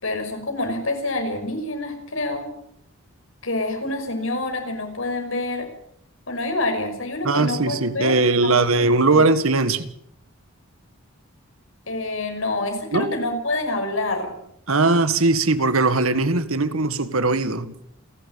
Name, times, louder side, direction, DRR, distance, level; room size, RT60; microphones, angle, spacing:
voice 1, 0.0-2.5 3.4-5.7 6.3-9.3 11.9-14.3, left 2 dB, 70° left, 5.9 m, -27 dB
voice 2, 7.2-9.9 12.9-13.1 14.7-17.7, right 3 dB, 80° right, 1.8 m, -20 dB
29.5 x 12.0 x 8.6 m
head